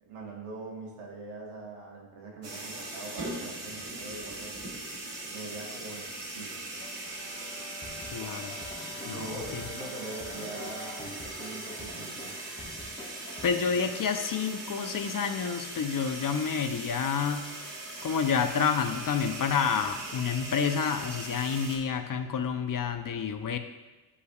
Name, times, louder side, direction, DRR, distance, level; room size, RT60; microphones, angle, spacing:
voice 1, 0.0-4.8 5.3-6.6 9.0-12.2, right 2 dB, 85° right, -1 dB, 1.4 m, -42 dB
sound 1, 2.4-21.8, right 2 dB, 55° right, 1.8 m, -40 dB
Brass instrument, 6.8-11.2, left 3 dB, 70° left, 1.0 m, -48 dB
sound 2, 7.8-13.9, left 1 dB, 15° left, 1.4 m, -46 dB
voice 2, 8.1-8.6 9.1-9.6 13.4-17.5 18.0-23.6, left 6 dB, 40° left, 8 dB, 0.6 m, -29 dB
9.6 x 5.2 x 2.4 m, 1.1 s
supercardioid pair, 50°, 50 cm